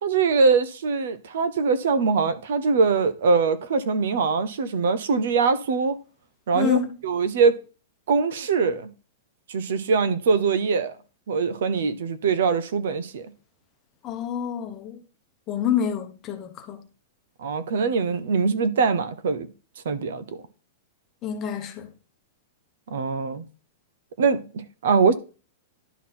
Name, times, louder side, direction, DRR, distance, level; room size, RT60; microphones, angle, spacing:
voice 1, 0.0-6.0 6.5-7.6 8.1-8.9 9.5-10.9 11.3-13.3 17.4-19.5 19.8-20.2 22.9-23.4 24.2-25.1, right 5 dB, 65° right, 0.8 m, -22 dB
voice 2, 6.5-6.9 14.0-15.0 15.5-16.8 21.2-21.9, left 8 dB, 20° left, 0.9 m, -27 dB
11.0 x 4.0 x 4.3 m
supercardioid pair, 175°, 0 cm